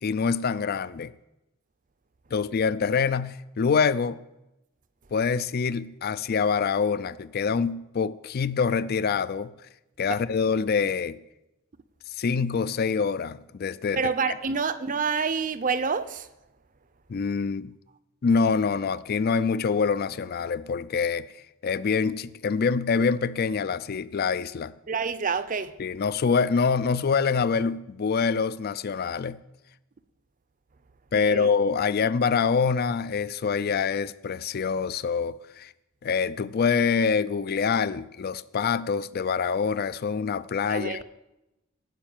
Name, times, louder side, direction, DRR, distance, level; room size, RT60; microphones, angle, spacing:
voice 1, 0.0-1.1 2.3-4.2 5.1-9.5 10.0-11.2 12.1-14.0 14.3-14.4 17.1-17.7 18.2-24.7 25.8-29.4 31.1-35.7 36.0-41.0, left 5 dB, 45° left, 0.4 m, -25 dB
voice 2, 13.9-16.3 24.9-25.7 31.1-31.5 40.7-41.0, right 5 dB, 40° right, 0.6 m, -27 dB
12.0 x 5.3 x 8.8 m
head